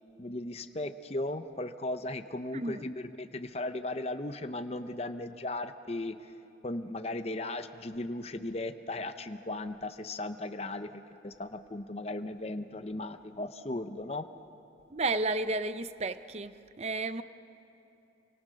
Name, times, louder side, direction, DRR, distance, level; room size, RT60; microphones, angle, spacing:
voice 1, 0.2-6.2 6.6-14.2, left 2 dB, 35° left, 9 dB, 0.7 m, -37 dB
voice 2, 14.9-16.5 16.8-17.2, right 2 dB, 35° right, 12 dB, 0.6 m, -32 dB
28.0 x 25.0 x 6.4 m, 2.9 s
head